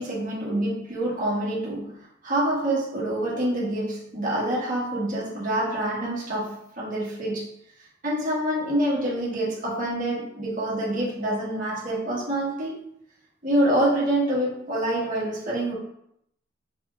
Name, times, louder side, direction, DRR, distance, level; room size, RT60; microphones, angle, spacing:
voice 1, 0.0-7.5 8.0-12.7 13.4-15.8, right 1 dB, 45° right, -7 dB, 1.6 m, -26 dB
4.7 x 3.6 x 2.5 m, 0.75 s
head